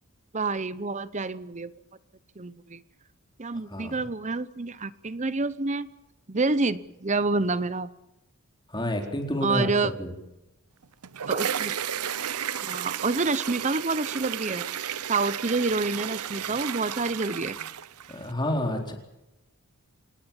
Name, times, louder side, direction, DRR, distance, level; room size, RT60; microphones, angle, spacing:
voice 1, 0.3-1.7 2.4-2.8 3.4-5.9 6.3-7.9 9.4-9.9 11.3-11.7 12.6-14.7 15.1-17.6, right 3 dB, 30° right, 15 dB, 0.8 m, -28 dB
voice 2, 8.7-10.1 18.1-18.9, left 1 dB, 20° left, 2 dB, 4.2 m, -29 dB
sound 1, 10.8-18.3, right 9 dB, 85° right, 0.8 m, -33 dB
27.0 x 19.0 x 7.4 m, 0.93 s
head